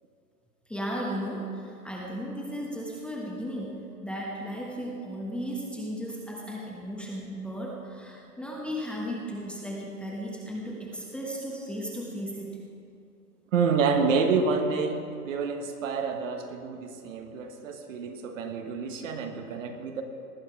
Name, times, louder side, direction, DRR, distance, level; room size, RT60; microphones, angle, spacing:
voice 1, 0.7-3.8 4.0-12.6, equal, ahead, -3 dB, 1.2 m, -35 dB
voice 2, 13.5-20.0, right 5 dB, 50° right, 5 dB, 1.5 m, -28 dB
19.0 x 9.4 x 4.7 m, 2.5 s
hypercardioid pair, 130°, 48 cm